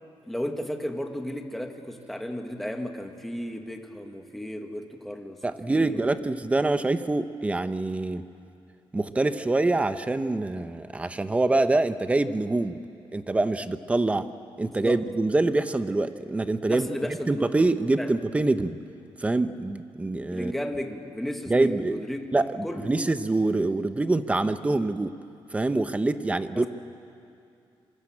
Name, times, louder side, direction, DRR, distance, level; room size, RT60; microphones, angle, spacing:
voice 1, 0.3-6.1 6.6-6.7 14.7-15.0 16.7-17.5 18.0-18.2 20.3-22.2 22.6-22.9 26.6-26.7, equal, ahead, 4 dB, 1.6 m, -34 dB
voice 2, 5.4-8.2 8.9-12.8 13.1-14.3 14.6-18.8 19.2-20.5 21.5-22.0 22.3-25.1 25.5-26.7, right 2 dB, 15° right, 10 dB, 0.8 m, -25 dB
26.5 x 25.0 x 8.7 m, 2.6 s
wide cardioid pair, 175°, 10 cm